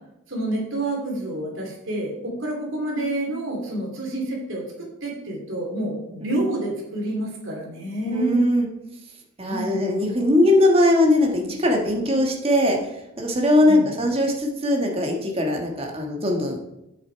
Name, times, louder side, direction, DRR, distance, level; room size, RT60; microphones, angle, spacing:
voice 1, 0.3-8.4 9.5-9.8 13.7-13.9, right 1 dB, 65° right, -1 dB, 2.8 m, -28 dB
voice 2, 8.1-8.7 9.4-12.8 13.2-16.7, left 1 dB, 25° right, 1 dB, 1.4 m, -20 dB
8.3 x 6.6 x 4.6 m, 0.88 s
head